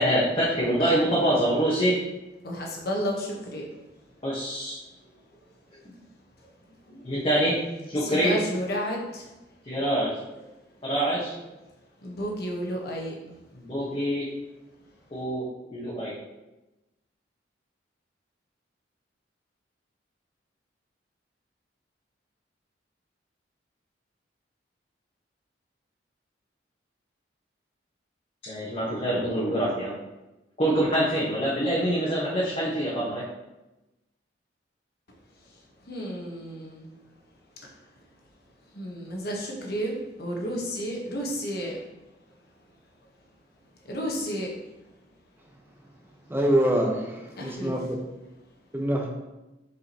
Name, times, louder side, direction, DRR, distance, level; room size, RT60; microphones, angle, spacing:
voice 1, 0.0-1.9 4.2-4.7 6.9-7.6 7.9-8.3 9.6-10.2 10.8-11.4 13.5-14.3 15.1-15.5 15.7-16.1 28.4-29.9 30.6-33.2, right 1 dB, 30° left, -7 dB, 1.3 m, -25 dB
voice 2, 0.7-1.0 2.4-3.8 7.0-7.3 8.0-9.3 12.0-13.3 35.8-36.9 38.7-41.8 43.9-44.5 47.4-47.7, equal, 55° left, -1 dB, 1.3 m, -32 dB
voice 3, 46.3-48.0 48.7-49.1, right 1 dB, 10° right, 1 dB, 0.8 m, -25 dB
6.7 x 5.0 x 3.0 m, 1.0 s
head